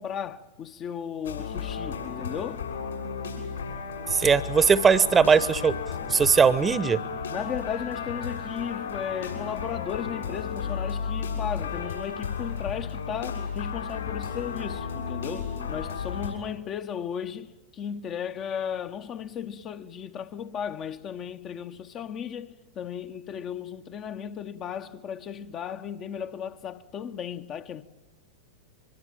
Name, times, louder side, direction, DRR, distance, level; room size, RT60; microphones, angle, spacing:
voice 1, 0.0-2.7 7.3-27.8, left 8 dB, 30° left, 0.9 m, -35 dB
sound 1, 1.2-16.3, left 6 dB, 70° left, 6.4 m, -33 dB
voice 2, 4.1-5.8 6.1-7.0, right 6 dB, 20° right, 1.0 m, -20 dB
24.5 x 22.5 x 9.0 m
figure-of-eight pair, 90°, 0 cm